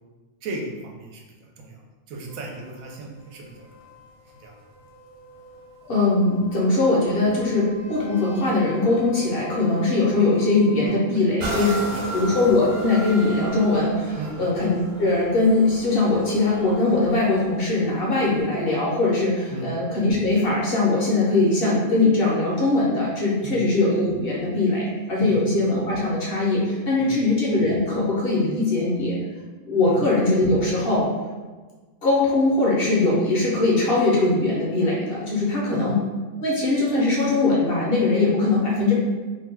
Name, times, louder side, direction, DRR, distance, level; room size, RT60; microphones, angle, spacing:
voice 1, 0.4-1.8 2.1-3.9 4.3-4.5 10.8-11.2 11.6-11.9 14.2-14.4 19.5-19.7 23.4-23.5 25.2-25.4 27.0-27.1 29.9-30.0 35.7-35.9, right 2 dB, 85° right, 0 dB, 1.0 m, -36 dB
sound 1, 2.3-10.9, left 6 dB, 75° left, 1.1 m, -44 dB
voice 2, 5.9-11.7 12.1-14.7 15.0-29.2 29.7-31.1 32.0-36.0 36.4-39.0, left 2 dB, 55° left, -5 dB, 0.8 m, -21 dB
sound 2, 11.4-19.0 19.6-19.7, right 1 dB, 60° right, 0.8 m, -35 dB
2.6 x 2.1 x 3.4 m, 1.3 s
omnidirectional pair, 1.4 m